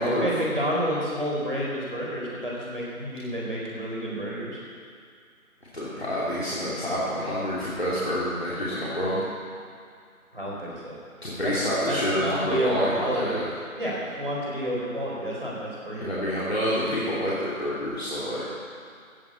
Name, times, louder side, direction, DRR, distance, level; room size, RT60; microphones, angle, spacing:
voice 1, 0.1-4.6 10.3-11.0 11.4-11.5 11.9-13.4 13.8-16.2, equal, 40° right, -5 dB, 4.2 m, -30 dB
voice 2, 5.7-9.2 11.2-13.5 15.9-18.6, equal, 45° left, -9 dB, 2.9 m, -27 dB
15.5 x 7.4 x 8.2 m, 2.3 s
figure-of-eight pair, 180°, 43 cm